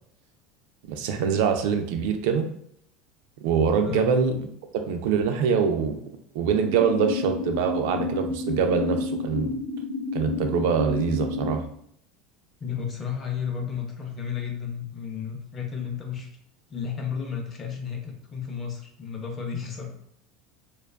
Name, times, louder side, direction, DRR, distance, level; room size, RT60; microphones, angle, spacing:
voice 1, 0.9-2.5 3.4-4.4 4.7-6.0 6.3-9.5 10.1-11.6, right 6 dB, 75° right, 6 dB, 0.3 m, -24 dB
voice 2, 3.8-4.2 12.6-16.3 16.7-19.9, left 7 dB, 30° left, 2 dB, 0.5 m, -32 dB
sound 1, 6.5-11.5, left 3 dB, 85° left, 0.7 m, -30 dB
2.4 x 2.2 x 2.2 m, 0.67 s
supercardioid pair, 130°, 0 cm